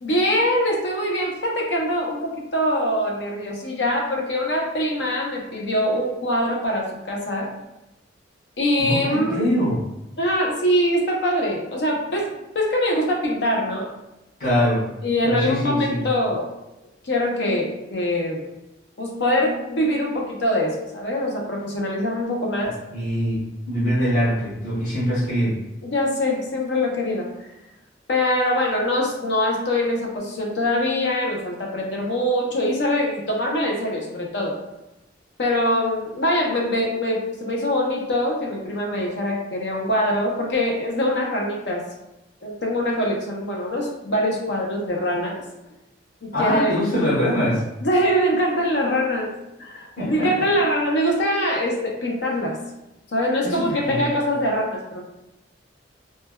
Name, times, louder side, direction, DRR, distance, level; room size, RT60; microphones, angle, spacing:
voice 1, 0.0-7.5 8.6-9.4 10.2-13.9 15.0-16.5 17.0-18.5 19.0-22.8 25.8-27.3 28.1-34.6 35.4-41.9 42.4-45.4 46.2-46.8 47.8-52.6 53.1-55.0, equal, 65° left, -1 dB, 0.6 m, -23 dB
voice 2, 8.8-9.8 14.4-14.8 15.2-16.0 22.9-25.6 46.3-47.6 50.0-50.3 53.4-54.1, equal, 45° left, -11 dB, 1.3 m, -23 dB
3.1 x 2.2 x 2.2 m, 0.93 s
head